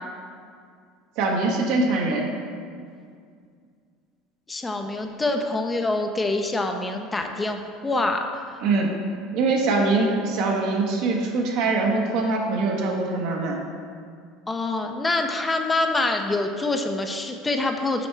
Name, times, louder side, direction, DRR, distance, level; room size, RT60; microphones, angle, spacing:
voice 1, 1.2-2.3 8.6-8.9 9.3-13.6, right 3 dB, 65° right, 0 dB, 1.1 m, -23 dB
voice 2, 4.5-7.6 7.8-8.6 14.5-18.1, left 2 dB, 20° left, 4 dB, 0.6 m, -25 dB
7.1 x 4.4 x 4.5 m, 2.2 s
hypercardioid pair, 80°, 0 cm